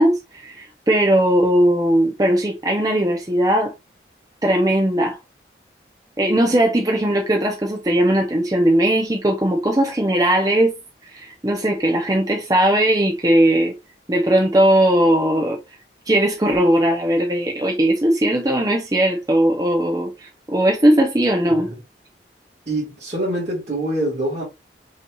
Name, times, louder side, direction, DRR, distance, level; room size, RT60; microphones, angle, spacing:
voice 1, 0.0-3.7 4.4-5.2 6.2-10.7 11.1-13.7 14.1-15.6 16.1-21.7, right 1 dB, 20° right, 0.6 m, -18 dB
voice 2, 21.4-21.8 22.7-24.4, right 1 dB, 40° right, 1.7 m, -25 dB
5.7 x 3.0 x 2.3 m
head